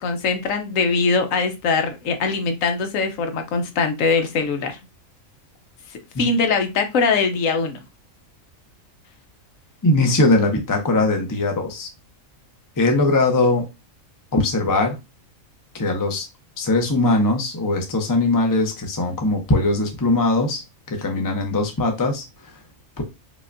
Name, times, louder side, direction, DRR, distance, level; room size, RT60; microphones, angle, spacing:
voice 1, 0.0-4.8 6.2-7.8, left 4 dB, 75° left, 6 dB, 1.0 m, -22 dB
voice 2, 9.8-11.9 12.8-13.6 14.3-15.0 15.8-16.2 16.6-20.6 21.0-22.2 23.0-23.1, left 2 dB, 25° left, 3 dB, 0.5 m, -20 dB
5.0 x 2.3 x 2.4 m, 0.24 s
omnidirectional pair, 1.4 m